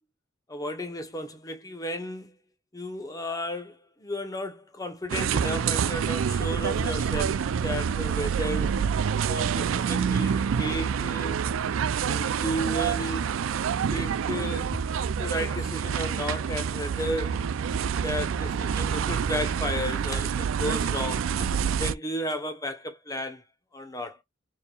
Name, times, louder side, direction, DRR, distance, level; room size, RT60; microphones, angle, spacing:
voice 1, 0.5-2.3 2.7-8.7 9.3-11.4 12.1-13.3 13.9-14.8 15.2-17.4 18.0-21.5 21.8-23.4 23.7-24.2, equal, 20° left, 0.9 m, -33 dB
sound 1, 5.1-21.9, right 7 dB, 80° right, 0.4 m, -27 dB
4.4 x 3.5 x 2.3 m
head